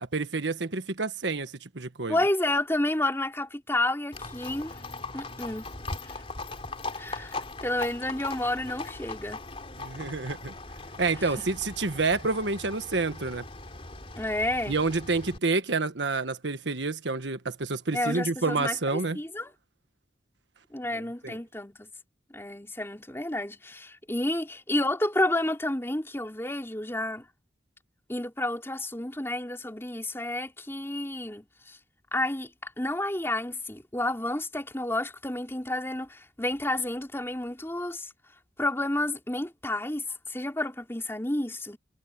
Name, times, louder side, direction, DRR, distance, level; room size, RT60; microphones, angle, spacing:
voice 1, 0.1-2.2 9.8-10.5 11.0-13.4 14.7-19.2 20.9-21.4, right 3 dB, 85° right, 1.4 m, -29 dB
voice 2, 2.1-4.8 5.1-5.7 7.0-9.4 11.2-11.5 14.2-14.8 17.9-19.5 20.7-21.9 22.3-27.3 28.1-31.8 32.1-38.1 38.6-41.8, left 1 dB, 15° left, 3.5 m, -30 dB
Livestock farm animals working animals, 4.1-15.4, left 3 dB, 35° left, 3.5 m, -40 dB
head